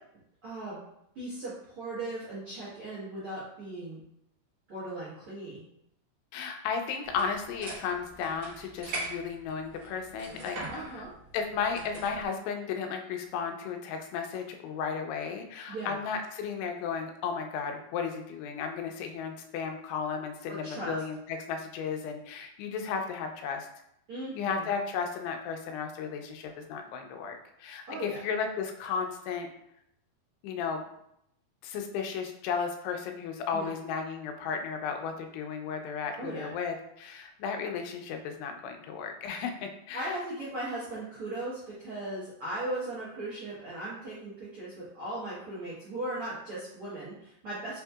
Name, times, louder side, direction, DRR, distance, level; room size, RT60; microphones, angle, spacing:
voice 1, 0.4-0.8 1.1-4.0 4.7-5.6 10.7-11.1 15.7-15.9 20.5-20.9 24.1-24.7 27.9-28.2 33.5-33.7 36.2-36.5 39.9-47.8, right 1 dB, 85° right, -10 dB, 1.2 m, -38 dB
voice 2, 6.3-11.0 11.3-23.7 24.4-29.5 30.4-30.8 31.6-40.2, left 6 dB, 90° left, 4 dB, 2.6 m, -34 dB
sound 1, 7.0-12.3, right 2 dB, 65° right, 1.2 m, -42 dB
6.0 x 2.7 x 2.3 m, 0.77 s
omnidirectional pair, 4.6 m